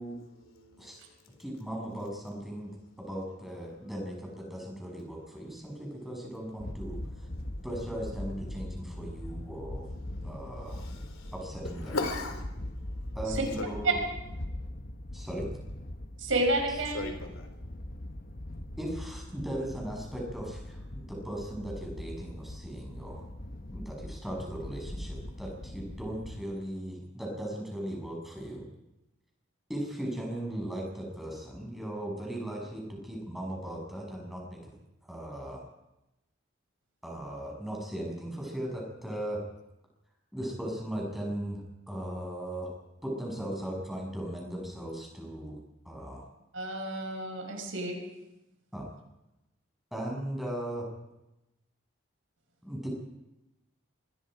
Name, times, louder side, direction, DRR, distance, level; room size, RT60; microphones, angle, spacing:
voice 1, 0.0-1.4 2.5-3.1 3.7-3.9 4.9-5.8 7.1-7.6 8.6-11.3 11.6-13.2 13.6-13.8 16.8-17.6, left 2 dB, 90° left, 6 dB, 4.1 m, -42 dB
voice 2, 1.4-2.7 3.0-7.3 7.6-9.8 10.2-10.8 11.3-11.9 13.1-14.0 15.1-15.5 16.7-16.8 18.8-23.3 23.7-28.6 29.7-34.6 35.1-35.6 37.0-39.4 40.3-42.7 43.0-45.6 45.8-46.3 48.7-48.9 49.9-50.9 52.6-52.9, right 1 dB, ahead, -2 dB, 6.8 m, -38 dB
sound 1, 6.6-26.4, left 1 dB, 45° left, 1.1 m, -41 dB
voice 3, 16.2-17.1 46.5-48.0, right 1 dB, 70° right, 2 dB, 6.1 m, -30 dB
26.5 x 21.0 x 5.1 m, 0.95 s
head